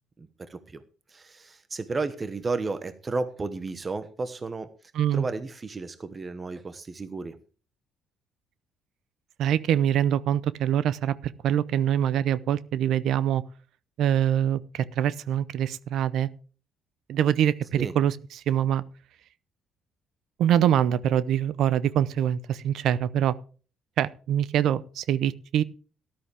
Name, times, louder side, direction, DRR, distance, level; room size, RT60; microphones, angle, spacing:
voice 1, 0.2-0.8 1.1-7.4 17.8-17.9, right 3 dB, 30° right, 1.1 m, -33 dB
voice 2, 4.9-5.3 9.4-13.4 14.0-16.3 17.1-18.8 20.4-23.4 24.0-25.6, right 10 dB, 70° right, 0.7 m, -24 dB
13.0 x 11.5 x 3.4 m
supercardioid pair, 75°, 0 cm